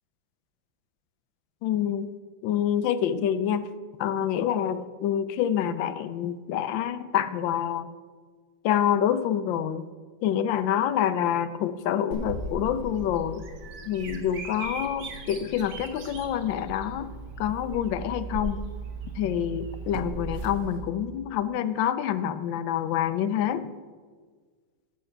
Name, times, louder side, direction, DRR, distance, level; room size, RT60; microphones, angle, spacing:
voice 1, 1.6-2.1 2.4-3.7 4.0-7.9 8.6-9.8 10.2-13.4 13.9-17.1 17.4-18.6 19.2-23.7, left 10 dB, 75° left, 13 dB, 1.3 m, -27 dB
Bird vocalization bird call bird song, 12.1-20.6, right 3 dB, 60° right, 1.7 m, -37 dB
sound 1, 16.6-16.8 17.3-17.4 19.9-21.4 21.7-21.8, right 5 dB, 80° right, 0.6 m, -45 dB
11.5 x 4.6 x 7.8 m, 1.5 s
omnidirectional pair, 2.2 m